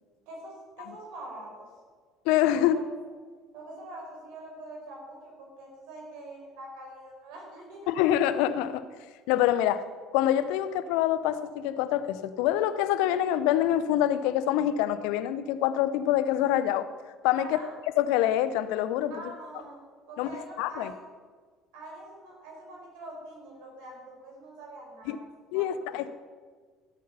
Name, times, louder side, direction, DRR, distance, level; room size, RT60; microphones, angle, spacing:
voice 1, 0.3-1.7 2.7-2.8 3.5-8.0 9.6-9.7 17.4-17.7 19.1-19.8 20.1-21.1 21.7-25.3 25.5-25.6 26.0-26.1, right 2 dB, 65° right, -1 dB, 4.8 m, -44 dB
voice 2, 2.3-2.8 7.9-8.9 9.3-9.8 10.1-16.9 17.2-17.6 18.0-19.1 20.2-20.9 25.1-25.2 25.5-26.1, left 12 dB, 65° left, 14 dB, 0.6 m, -25 dB
16.0 x 8.5 x 5.6 m, 1.5 s
figure-of-eight pair, 60°, 0 cm